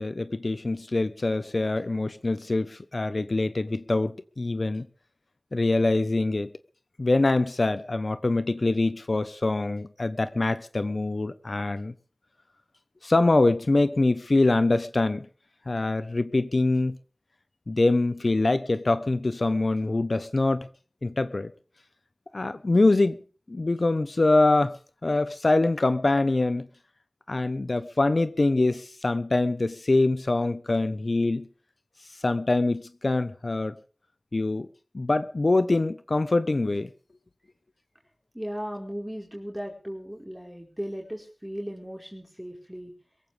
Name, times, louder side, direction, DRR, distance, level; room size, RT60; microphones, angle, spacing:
voice 1, 0.0-4.9 5.5-6.5 7.0-11.9 13.0-15.3 15.7-17.0 17.7-20.7 21.0-21.5 22.3-23.2 23.5-26.7 27.3-31.5 32.2-33.8 34.3-34.7 34.9-36.9, left 2 dB, 70° left, 1.1 m, -24 dB
voice 2, 38.3-42.9, equal, 10° right, 4.8 m, -36 dB
23.0 x 15.5 x 3.5 m
wide cardioid pair, 55°, 0 cm